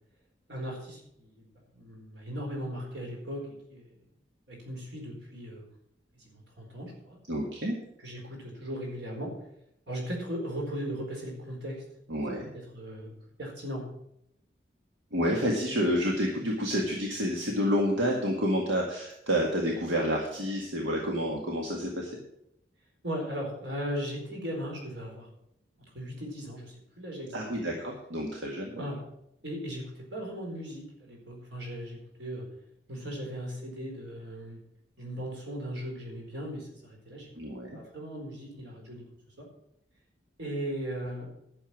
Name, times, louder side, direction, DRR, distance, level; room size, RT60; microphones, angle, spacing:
voice 1, 0.5-1.4 1.7-3.4 3.7-3.9 4.5-5.7 6.2-7.2 8.0-9.3 9.9-11.8 12.5-13.1 13.4-13.9 23.0-25.3 25.9-27.4 28.8-29.0 29.4-32.4 32.9-34.6 35.0-37.3 37.7-39.0 39.4-39.5 40.4-41.3, equal, 70° right, 0 dB, 4.3 m, -37 dB
voice 2, 7.3-7.8 12.1-12.5 15.1-22.1 27.3-28.9 37.4-37.8, equal, 90° right, -1 dB, 2.0 m, -29 dB
11.5 x 7.2 x 7.4 m, 0.78 s
head